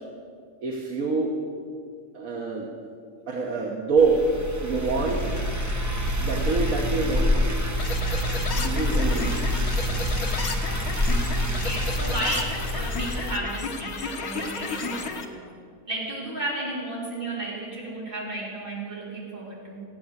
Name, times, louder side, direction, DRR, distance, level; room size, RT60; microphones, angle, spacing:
voice 1, 0.6-1.3 2.1-2.7 3.3-4.2 4.6-5.4 6.2-7.5 8.5-9.4, right 4 dB, 70° right, -1 dB, 1.7 m, -26 dB
sound 1, 4.0-13.4, left 1 dB, 15° right, 1.1 m, -26 dB
sound 2, 7.8-15.3, left 4 dB, 80° left, 1.7 m, -33 dB
voice 2, 11.4-15.3 15.9-19.8, right 1 dB, 35° right, -6 dB, 4.5 m, -33 dB
16.0 x 9.4 x 8.0 m, 2.3 s
omnidirectional pair, 1.5 m